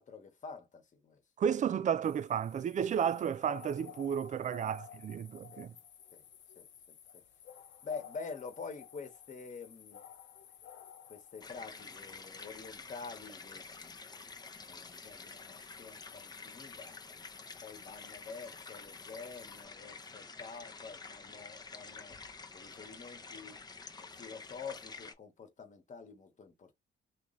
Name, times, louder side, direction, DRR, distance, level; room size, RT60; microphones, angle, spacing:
voice 1, 0.0-1.2 4.7-4.8 5.5-5.6 6.1-6.2 6.6-7.2 7.8-10.0 11.1-14.0 14.6-17.0 17.6-22.2 22.5-23.6 24.0-26.8, left 5 dB, 40° left, 1.1 m, -47 dB
voice 2, 1.4-5.7, right 8 dB, 40° right, 0.4 m, -32 dB
sound 1, 2.0-19.7, left 9 dB, 65° left, 0.8 m, -55 dB
sound 2, 11.4-25.1, left 4 dB, 20° left, 0.6 m, -49 dB
3.0 x 2.3 x 3.9 m
cardioid pair, 90°, 20 cm